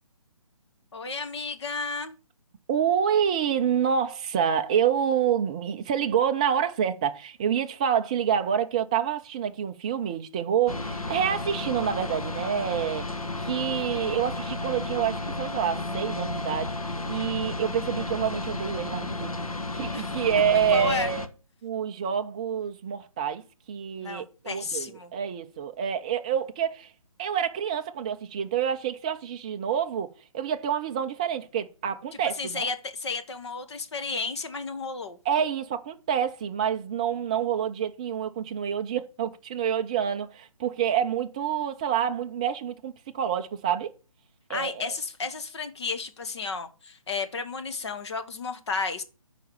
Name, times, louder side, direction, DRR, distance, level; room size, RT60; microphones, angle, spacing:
voice 1, 0.9-2.1 19.9-20.1 20.7-21.1 24.0-25.1 32.4-35.2 44.5-49.0, left 4 dB, 50° left, 1.4 m, -32 dB
voice 2, 2.7-13.1 13.4-19.4 19.7-21.3 21.6-23.4 23.7-26.9 27.2-30.1 30.3-32.7 35.3-43.9 44.5-44.9, right 8 dB, 15° right, 0.3 m, -27 dB
sound 1, 10.7-21.3, left 2 dB, 80° left, 1.4 m, -33 dB
9.1 x 4.9 x 6.9 m
figure-of-eight pair, 145°, 18 cm